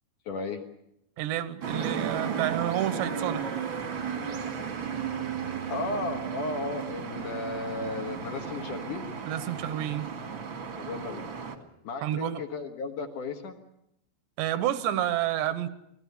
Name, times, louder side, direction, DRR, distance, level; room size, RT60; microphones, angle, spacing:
voice 1, 0.3-0.6 5.7-9.1 10.8-11.3 11.8-13.6, left 3 dB, 60° left, 5 dB, 2.5 m, -34 dB
voice 2, 1.2-3.6 9.3-10.1 12.0-12.4 14.4-15.7, right 12 dB, 80° right, 13 dB, 3.3 m, -29 dB
sound 1, 1.6-11.6, right 7 dB, 45° right, 1.7 m, -34 dB
26.5 x 18.0 x 8.3 m, 0.79 s
omnidirectional pair, 5.0 m